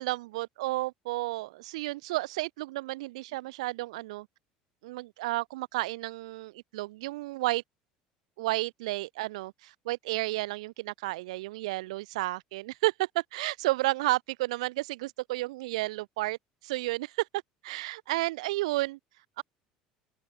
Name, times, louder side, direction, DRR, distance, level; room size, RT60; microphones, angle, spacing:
voice 1, 0.0-4.3 4.8-7.6 8.4-16.4 16.6-17.3 17.6-19.0 19.4-19.5, right 19 dB, 80° right, 2.4 m, -32 dB
hypercardioid pair, 75°, 3 cm